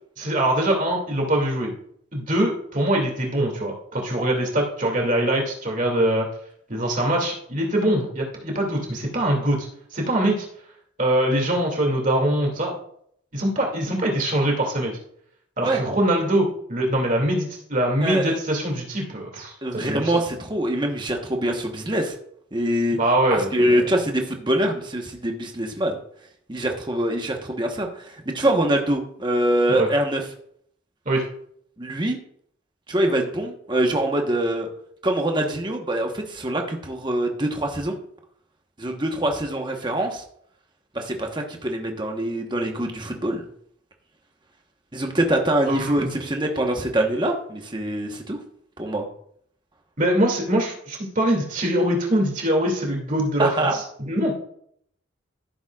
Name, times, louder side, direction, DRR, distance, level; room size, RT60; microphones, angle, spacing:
voice 1, 0.2-1.7 2.1-6.3 6.7-9.7 9.9-10.5 11.0-12.7 13.3-14.9 15.6-20.1 23.0-23.9 29.7-29.9 31.1-31.2 45.7-46.0 50.0-54.4, right 1 dB, 40° right, 0 dB, 2.4 m, -23 dB
voice 2, 18.0-18.3 19.6-22.1 22.5-23.0 23.3-26.0 26.5-30.2 31.8-32.2 32.9-34.7 35.0-38.0 38.8-40.2 40.9-43.4 44.9-48.4 48.8-49.1 53.4-53.8, right 1 dB, 25° right, 3 dB, 1.1 m, -24 dB
14.0 x 7.2 x 2.4 m, 0.66 s
head